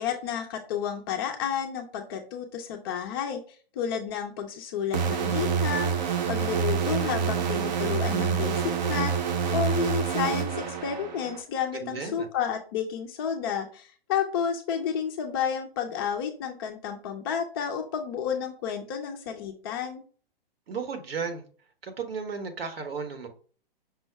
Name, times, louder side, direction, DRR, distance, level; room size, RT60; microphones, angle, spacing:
voice 1, 0.0-3.4 3.8-20.0, left 8 dB, 25° left, 4 dB, 0.4 m, -31 dB
sound 1, 4.9-11.4, right 7 dB, 45° right, 0.8 m, -27 dB
voice 2, 11.7-12.3 20.7-21.4 21.8-23.3, right 5 dB, 70° right, 7 dB, 1.3 m, -34 dB
5.4 x 2.1 x 4.5 m, 0.41 s
hypercardioid pair, 140°, 30 cm